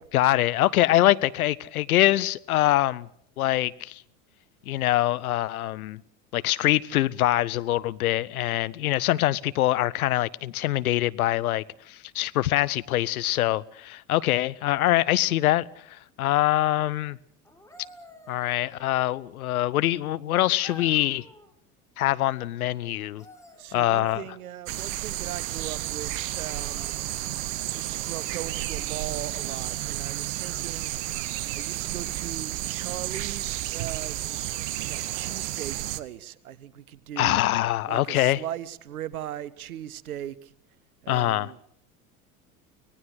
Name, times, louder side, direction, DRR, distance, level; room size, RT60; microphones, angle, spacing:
voice 1, 0.1-3.1 3.4-4.0 4.7-6.0 6.3-17.2 18.3-21.3 22.0-23.2 23.7-24.2 37.2-38.4 41.1-41.5, left 15 dB, 80° left, 0.8 m, -24 dB
sound 1, 17.4-19.4 20.6-21.6 23.0-24.6 26.7-27.3 28.1-28.5 29.2-31.0 32.9-33.1, left 1 dB, 5° left, 3.9 m, -52 dB
voice 2, 23.6-26.9 27.5-30.9 31.5-34.5 34.8-37.4 37.9-40.5 41.0-41.6, right 11 dB, 80° right, 1.1 m, -39 dB
sound 2, 24.7-36.0, right 15 dB, 60° right, 1.2 m, -32 dB
25.0 x 18.5 x 6.4 m
hypercardioid pair, 75°, 43 cm